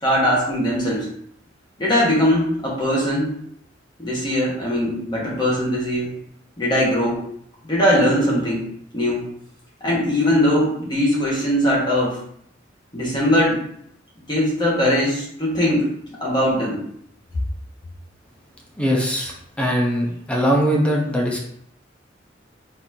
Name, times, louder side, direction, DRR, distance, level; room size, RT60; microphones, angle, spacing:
voice 1, 0.0-1.1 1.8-3.3 4.0-6.1 6.6-7.2 7.7-8.6 8.9-9.2 9.8-12.2 12.9-13.6 14.3-15.9 16.2-16.8, equal, 25° left, -5 dB, 1.3 m, -20 dB
voice 2, 18.8-21.4, equal, 5° left, -2 dB, 0.7 m, -21 dB
4.0 x 3.1 x 2.7 m, 0.69 s
head